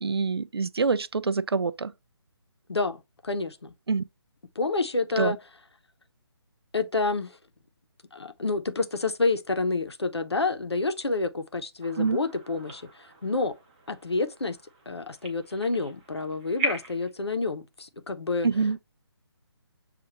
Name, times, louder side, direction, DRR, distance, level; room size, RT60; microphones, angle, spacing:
voice 1, 0.0-1.9 3.9-4.0 5.2-5.4 12.0-12.2 18.4-18.8, right 4 dB, 65° right, 0.4 m, -25 dB
voice 2, 2.7-3.7 4.6-5.4 6.7-7.3 8.1-13.5 13.9-14.6 14.9-18.5, left 3 dB, 70° left, 0.8 m, -28 dB
sound 1, 11.8-17.1, right 1 dB, 15° right, 0.6 m, -38 dB
6.5 x 2.5 x 2.9 m
figure-of-eight pair, 145°, 14 cm